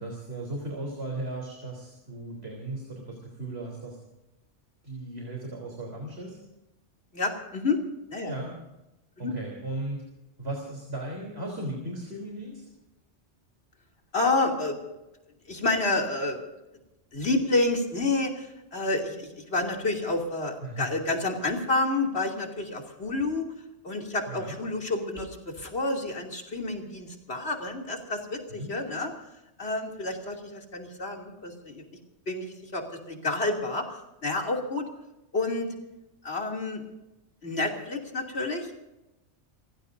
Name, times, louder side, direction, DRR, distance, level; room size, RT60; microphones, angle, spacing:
voice 1, 0.0-4.0 4.8-6.4 8.2-8.5 9.2-10.0 10.4-12.6 20.6-21.0 24.3-24.6 28.6-28.7, right 2 dB, 60° right, -1 dB, 3.9 m, -36 dB
voice 2, 7.1-7.8 8.1-8.3 9.2-9.3 14.1-14.8 15.5-16.4 17.1-23.5 23.8-29.1 29.6-31.8 32.3-34.9 35.3-35.7 36.2-36.8 37.4-38.8, left 2 dB, 60° left, 1 dB, 3.1 m, -29 dB
29.5 x 16.0 x 2.7 m, 0.96 s
omnidirectional pair, 1.2 m